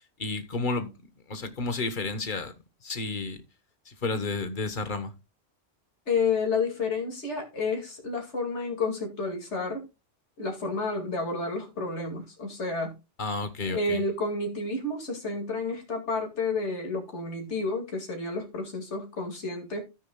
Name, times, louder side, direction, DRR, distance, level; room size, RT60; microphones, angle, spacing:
voice 1, 0.2-0.9 1.3-2.5 2.8-3.4 3.9-5.1 13.2-14.0, left 3 dB, 45° left, 1.4 m, -31 dB
voice 2, 6.1-9.9 10.4-12.9 13.6-19.8, left 3 dB, 70° left, 2.7 m, -30 dB
13.5 x 9.2 x 2.3 m
omnidirectional pair, 1.2 m